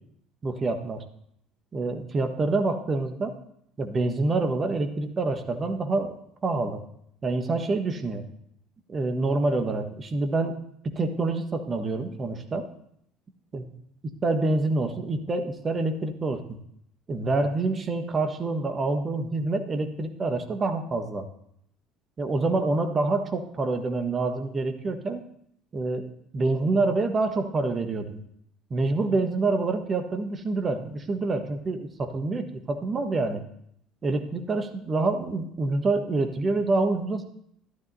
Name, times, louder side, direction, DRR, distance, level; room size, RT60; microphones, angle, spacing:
voice 1, 0.4-1.0 1.7-3.3 3.8-6.2 6.4-6.8 7.2-8.2 8.9-10.5 10.8-12.7 13.5-13.6 14.2-16.4 17.1-21.2 22.2-25.2 25.7-26.1 26.3-28.2 28.7-33.4 34.0-37.2, right 3 dB, 30° right, 6 dB, 1.3 m, -27 dB
13.0 x 12.0 x 2.7 m, 0.72 s
figure-of-eight pair, 60°, 0 cm